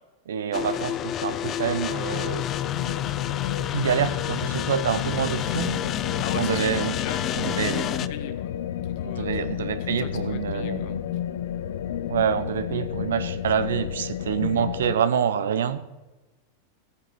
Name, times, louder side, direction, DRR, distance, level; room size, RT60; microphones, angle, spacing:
voice 1, 0.3-2.4 3.7-5.9 6.3-7.0 7.3-8.0 9.0-11.1 12.1-15.9, right 8 dB, 85° right, 13 dB, 0.9 m, -27 dB
sound 1, 0.5-8.1, left 11 dB, 35° left, 0.5 m, -29 dB
sound 2, 2.1-14.9, left 10 dB, 75° left, 0.7 m, -31 dB
voice 2, 6.2-8.5 8.8-11.0, left 9 dB, 60° left, 9 dB, 1.6 m, -40 dB
15.0 x 9.4 x 6.3 m, 1.1 s
hypercardioid pair, 120°, 0 cm